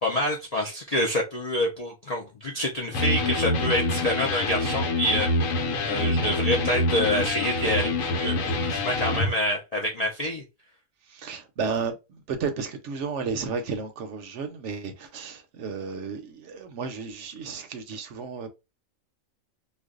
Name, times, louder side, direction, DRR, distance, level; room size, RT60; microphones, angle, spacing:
voice 1, 0.0-5.3 5.9-10.4, left 1 dB, 55° left, 0.4 m, -27 dB
Electric guitar, 2.9-9.3, left 2 dB, 80° left, 1.1 m, -26 dB
voice 2, 11.1-18.5, right 5 dB, 65° right, 0.8 m, -33 dB
2.5 x 2.1 x 3.6 m
omnidirectional pair, 1.4 m